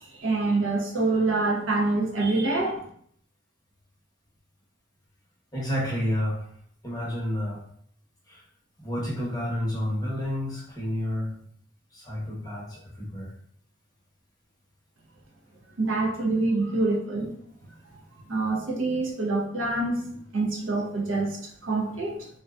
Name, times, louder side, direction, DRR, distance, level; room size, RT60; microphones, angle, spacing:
voice 1, 0.0-2.9 15.8-17.3 18.3-22.3, right 2 dB, 80° right, 0 dB, 0.6 m, -26 dB
voice 2, 5.5-6.5 6.8-7.6 8.3-8.4 8.8-11.4 11.9-13.3, left 1 dB, 20° left, -6 dB, 0.7 m, -30 dB
2.5 x 2.2 x 2.3 m, 0.63 s
head